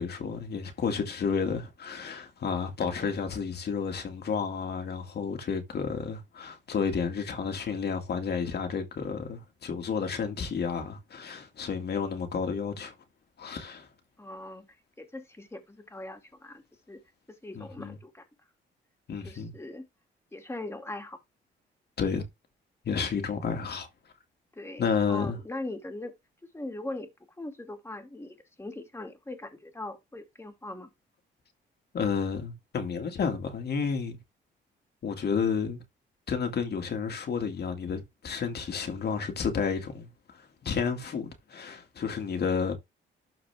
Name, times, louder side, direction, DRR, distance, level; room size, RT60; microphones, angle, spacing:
voice 1, 0.0-12.9 13.4-13.9 17.5-18.0 19.1-19.5 22.0-22.2 22.8-23.9 24.8-25.4 31.9-34.2 35.0-35.8 36.3-42.7, left 6 dB, 55° left, 2.3 m, -31 dB
voice 2, 14.2-14.7 15.0-16.6 16.9-17.0 17.3-18.2 19.2-19.9 20.3-21.2 24.6-24.8 25.1-26.1 26.5-27.1 27.4-30.9, left 2 dB, 10° left, 2.6 m, -40 dB
12.5 x 4.7 x 3.5 m
cardioid pair, 90°, 20 cm